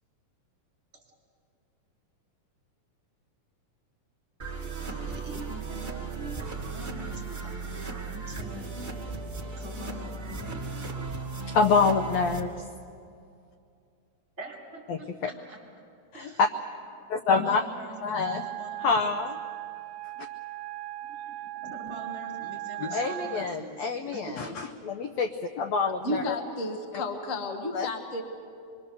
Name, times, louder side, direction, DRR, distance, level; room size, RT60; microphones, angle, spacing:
sound 1, 4.4-12.4, right 4 dB, 40° right, 0.7 m, -36 dB
voice 1, 4.9-8.8 9.6-10.6 14.4-15.6 16.1-16.4 17.3-19.2 21.0-21.4 21.6-24.6, right 1 dB, 20° right, -1 dB, 3.9 m, -44 dB
voice 2, 11.5-12.6 14.9-15.0 16.1-16.3 17.1-17.6 18.0-18.4 18.8-19.3 22.8-24.5 24.8-26.3 26.9-27.0 27.7-27.9, left 5 dB, 85° left, 5 dB, 1.5 m, -26 dB
Wind instrument woodwind instrument, 18.2-23.6, right 17 dB, 80° right, 2.3 m, -38 dB
voice 3, 26.0-28.2, left 1 dB, 65° left, 4 dB, 0.7 m, -32 dB
25.0 x 22.5 x 6.8 m, 2.5 s
omnidirectional pair, 3.9 m